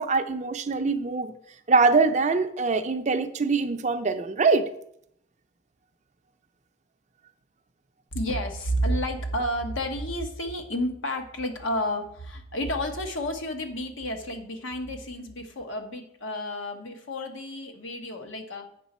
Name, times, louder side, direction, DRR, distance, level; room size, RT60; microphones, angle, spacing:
voice 1, 0.0-1.3 1.7-4.6, right 4 dB, 35° right, 8 dB, 0.5 m, -23 dB
voice 2, 8.1-18.7, equal, 70° left, 4 dB, 1.1 m, -31 dB
8.1 x 5.9 x 4.2 m, 0.71 s
head